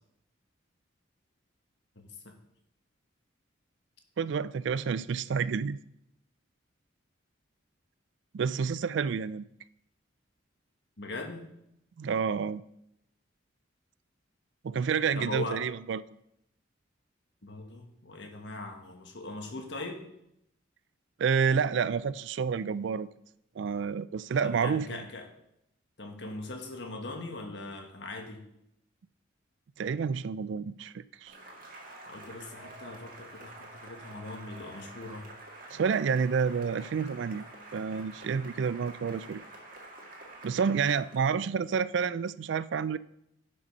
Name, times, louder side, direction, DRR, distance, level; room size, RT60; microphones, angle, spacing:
voice 1, 1.9-2.3 11.0-11.4 15.1-15.6 17.4-20.0 24.4-25.3 26.0-28.4 32.1-35.3, left 2 dB, 60° left, 1.5 m, -40 dB
voice 2, 4.2-5.8 8.3-9.5 12.0-12.6 14.6-16.0 21.2-23.1 23.6-25.0 29.8-31.4 35.7-37.4 37.7-39.4 40.4-43.0, right 6 dB, 65° right, 0.3 m, -29 dB
Cheering / Applause, 31.3-41.3, right 2 dB, 45° right, 1.9 m, -48 dB
11.0 x 5.4 x 5.4 m
head